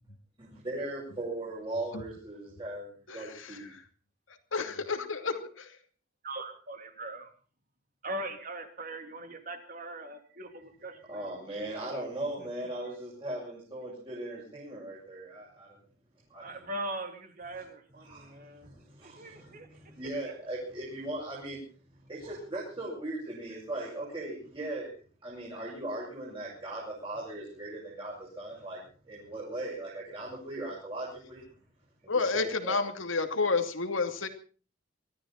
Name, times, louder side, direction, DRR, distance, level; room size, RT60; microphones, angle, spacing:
voice 1, 0.4-3.7 11.1-15.8 16.3-16.6 18.0-21.6 22.1-24.9 25.2-28.8 29.1-31.4 32.0-32.7, right 1 dB, 25° right, -6 dB, 6.9 m, -38 dB
voice 2, 3.1-3.8 4.5-5.8 32.1-34.3, left 4 dB, 75° left, 7 dB, 2.5 m, -31 dB
voice 3, 6.2-7.3 8.0-11.3 12.4-12.5 12.7-12.9 16.4-18.7 19.0-19.9, right 1 dB, 45° right, 6 dB, 3.1 m, -41 dB
23.5 x 14.0 x 4.3 m, 0.39 s
head